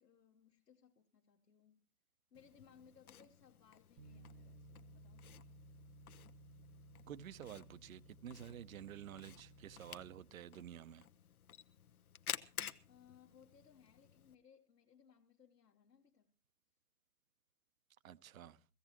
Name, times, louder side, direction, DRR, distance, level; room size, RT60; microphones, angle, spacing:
voice 1, 0.0-1.8 2.3-5.3 12.9-16.3, left 7 dB, 80° left, 1.5 m, -66 dB
Camera, 2.3-14.3, left 9 dB, 60° left, 1.1 m, -52 dB
Bass guitar, 4.0-10.2, right 1 dB, 10° right, 1.0 m, -59 dB
voice 2, 7.1-11.1 18.0-18.6, right 10 dB, 60° right, 0.8 m, -51 dB
22.5 x 16.0 x 3.0 m
hypercardioid pair, 155°, 48 cm